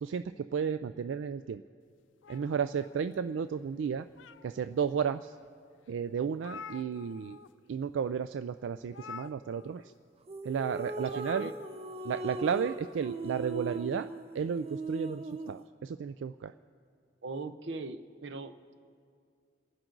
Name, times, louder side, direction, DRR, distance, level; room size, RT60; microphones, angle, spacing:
voice 1, 0.0-1.6 2.3-4.1 4.4-5.3 5.9-7.4 7.7-9.8 10.4-11.5 12.0-14.1 14.3-16.5, right 7 dB, 90° right, 11 dB, 0.3 m, -33 dB
sound 1, 2.2-3.4 3.9-4.8 5.4-5.5 5.9-6.0 6.1-7.5 7.8-8.0 8.9-9.9 11.1-12.0, left 6 dB, 90° left, 0.5 m, -48 dB
sound 2, 10.3-15.6, right 2 dB, 35° right, 0.6 m, -39 dB
voice 2, 11.0-11.5 12.2-12.4 17.2-18.8, right 3 dB, 70° right, 11 dB, 0.7 m, -40 dB
28.5 x 10.5 x 3.9 m, 2.3 s
head